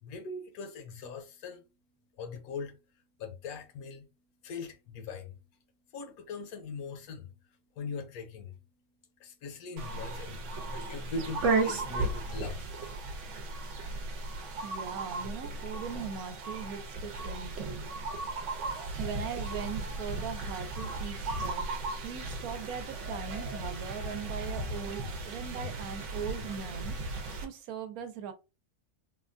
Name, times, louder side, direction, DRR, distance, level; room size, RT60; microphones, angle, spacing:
voice 1, 0.0-1.6 2.2-2.8 3.2-4.1 4.4-5.4 5.9-8.6 9.2-12.7, left 4 dB, 80° left, 1.2 m, -41 dB
sound 1, 9.8-27.5, right 3 dB, 60° right, 0.9 m, -35 dB
voice 2, 14.6-17.9 19.0-21.7 22.0-27.0 27.4-28.3, right 7 dB, 80° right, 1.1 m, -40 dB
3.5 x 2.2 x 2.5 m
omnidirectional pair, 1.6 m